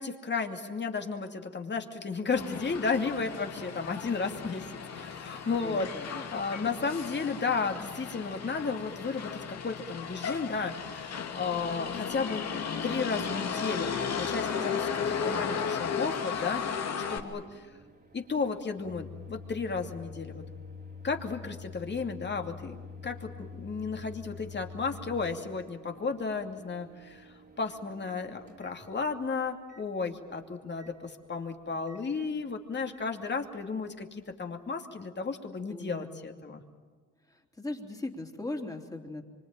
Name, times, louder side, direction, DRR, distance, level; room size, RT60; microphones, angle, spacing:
voice 1, 0.0-17.7 18.1-20.4 21.0-36.6, left 4 dB, 35° left, 4 dB, 2.7 m, -34 dB
Motor vehicle (road), 2.3-17.2, left 6 dB, 60° left, 2.7 m, -35 dB
Microwave oven, 16.7-29.3 29.7-29.9 30.8-30.9 31.9-32.0 33.0-33.1, left 4 dB, 35° right, 3.0 m, -47 dB
voice 2, 35.7-36.2 37.3-39.2, left 2 dB, 10° left, 2 dB, 3.3 m, -38 dB
25.5 x 25.0 x 9.1 m, 1.4 s
cardioid pair, 90°, 30 cm